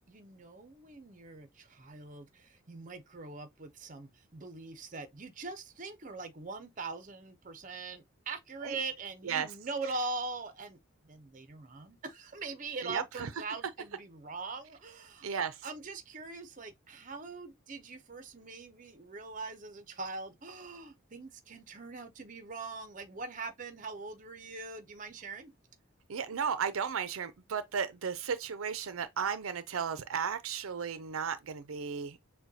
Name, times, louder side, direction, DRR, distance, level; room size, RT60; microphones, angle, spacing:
voice 1, 0.1-15.3 15.6-25.5, right 3 dB, 40° right, 0.6 m, -42 dB
voice 2, 12.8-13.3 15.2-15.7 26.1-32.2, right 6 dB, 90° right, 0.5 m, -34 dB
6.1 x 2.2 x 2.7 m
head